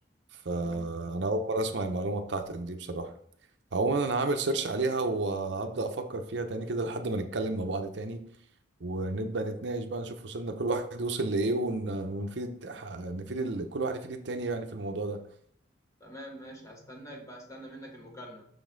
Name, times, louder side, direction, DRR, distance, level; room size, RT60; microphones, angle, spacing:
voice 1, 0.4-3.1 3.7-8.2 8.8-15.2, right 2 dB, 70° right, 6 dB, 0.7 m, -31 dB
voice 2, 16.0-18.5, equal, 15° left, -1 dB, 1.4 m, -45 dB
6.3 x 5.2 x 3.8 m, 0.67 s
head